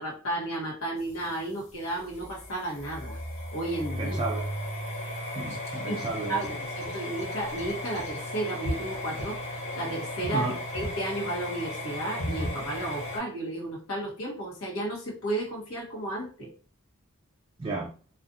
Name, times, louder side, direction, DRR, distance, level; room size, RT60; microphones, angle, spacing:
voice 1, 0.0-3.2 3.5-4.2 5.9-9.4 9.7-10.5 10.7-16.5, right 1 dB, 70° left, -2 dB, 1.0 m, -33 dB
sound 1, 1.0-13.2, left 1 dB, 30° left, 1.1 m, -35 dB
voice 2, 4.0-4.6 5.4-6.5 6.9-7.0 10.3-10.6 17.6-17.9, right 3 dB, 25° right, -1 dB, 0.4 m, -33 dB
2.5 x 2.4 x 2.6 m, 0.40 s
head